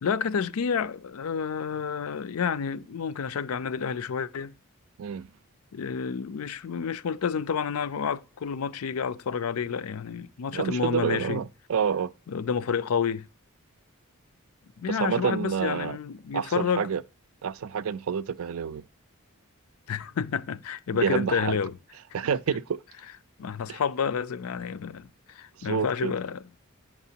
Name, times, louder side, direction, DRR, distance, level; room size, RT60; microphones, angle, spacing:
voice 1, 0.0-4.5 5.7-11.4 12.3-13.3 14.8-16.8 19.9-21.8 23.4-26.7, left 6 dB, 75° left, 0.4 m, -30 dB
voice 2, 10.5-12.1 14.9-16.0 16.3-17.0 17.4-18.8 21.0-21.6 22.1-22.8 23.7-23.8 25.6-26.1, right 7 dB, 70° right, 0.4 m, -28 dB
9.1 x 5.9 x 2.8 m
head